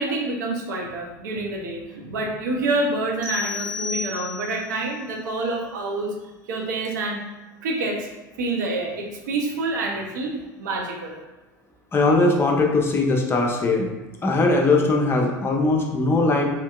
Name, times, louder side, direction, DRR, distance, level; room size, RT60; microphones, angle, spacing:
voice 1, 0.0-6.2 6.4-7.2 7.6-8.1 8.4-11.2, right 2 dB, 70° right, 1 dB, 0.6 m, -27 dB
sound 1, 3.2-4.8, left 4 dB, 90° right, 1.1 m, -32 dB
voice 2, 11.9-13.9 14.2-16.5, left 2 dB, 25° left, 0 dB, 0.7 m, -20 dB
3.5 x 2.7 x 2.3 m, 1.1 s
figure-of-eight pair, 75°, 10 cm